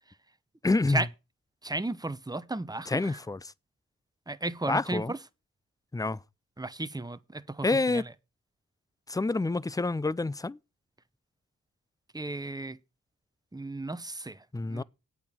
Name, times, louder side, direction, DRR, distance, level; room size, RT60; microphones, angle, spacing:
voice 1, 0.6-1.0 2.9-3.4 4.7-5.1 5.9-6.2 7.6-8.0 9.1-10.6 14.5-14.8, left 3 dB, 10° left, 0.4 m, -27 dB
voice 2, 1.6-3.2 4.3-5.2 6.6-8.1 12.1-12.8 13.5-14.8, right 2 dB, 10° right, 0.8 m, -34 dB
8.5 x 6.1 x 7.6 m
cardioid pair, 55°, 35 cm